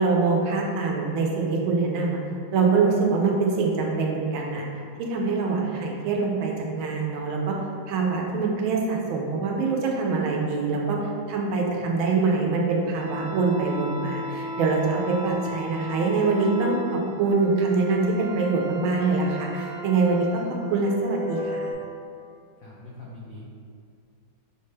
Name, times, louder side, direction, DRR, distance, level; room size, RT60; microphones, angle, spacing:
voice 1, 0.0-2.2 2.5-4.7 5.0-7.6 7.9-11.0 11.3-21.6, right 4 dB, 85° right, -1 dB, 1.4 m, -24 dB
sound 1, 12.9-21.7, equal, 70° right, 1.2 m, -35 dB
voice 2, 22.6-23.5, left 2 dB, 85° left, -6 dB, 0.7 m, -42 dB
5.7 x 2.2 x 3.2 m, 2.4 s
omnidirectional pair, 2.2 m